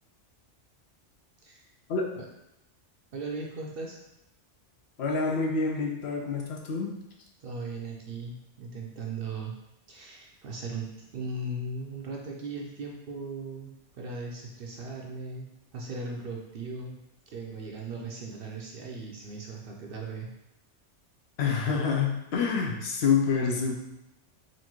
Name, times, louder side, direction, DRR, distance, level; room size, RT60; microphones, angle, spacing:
voice 1, 3.1-4.0 7.4-9.6 9.9-17.0 17.3-20.3, right 3 dB, 60° right, 0 dB, 0.7 m, -38 dB
voice 2, 5.0-6.9 21.4-23.7, left 5 dB, 70° left, 0 dB, 0.8 m, -27 dB
4.0 x 2.6 x 2.9 m, 0.88 s
omnidirectional pair, 1.2 m